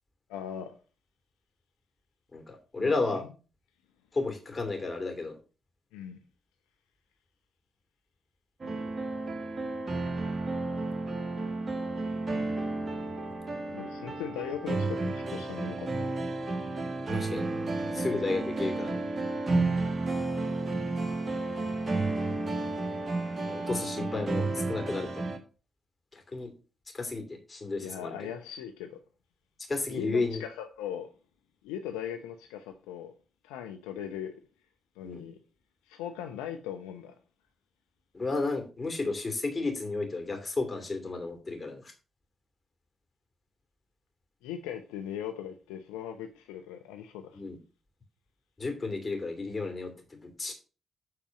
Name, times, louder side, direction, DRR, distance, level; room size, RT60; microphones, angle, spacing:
voice 1, 0.3-0.7 2.8-3.3 5.9-6.2 13.7-16.1 19.5-19.9 27.8-29.0 29.9-31.1 31.6-33.1 33.4-34.4 35.0-35.4 35.9-37.1 44.4-47.4, left 9 dB, 85° left, 0.6 m, -39 dB
voice 2, 2.3-3.2 4.1-5.4 17.1-17.5 17.9-19.0 23.4-25.2 26.1-26.5 26.9-28.1 29.7-30.4 35.0-35.2 38.1-41.8 47.3-47.6 48.6-50.5, left 3 dB, 35° left, 2.8 m, -32 dB
sound 1, 8.6-25.4, right 2 dB, 45° right, 1.6 m, -32 dB
7.7 x 4.2 x 5.9 m
hypercardioid pair, 40°, 0 cm